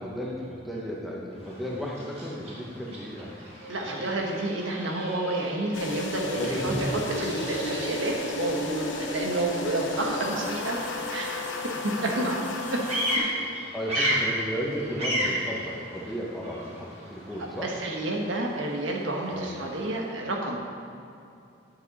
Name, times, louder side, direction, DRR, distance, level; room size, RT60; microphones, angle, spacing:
voice 1, 0.0-3.3 4.1-4.3 6.3-6.9 13.7-17.7 19.3-19.5, equal, ahead, -4 dB, 1.1 m, -34 dB
Bird vocalization bird call bird song, 1.3-20.1, equal, 35° right, 1.8 m, -36 dB
sound 1, 3.2-13.4, right 2 dB, 55° right, 1.1 m, -47 dB
voice 2, 3.7-10.8 11.1-11.5 11.8-12.4 12.7-12.8 13.9-14.3 17.6-20.6, right 2 dB, 85° right, 0 dB, 1.3 m, -30 dB
sound 2, 5.7-13.2, left 2 dB, 75° left, 0.9 m, -33 dB
10.0 x 7.2 x 4.2 m, 2.6 s
head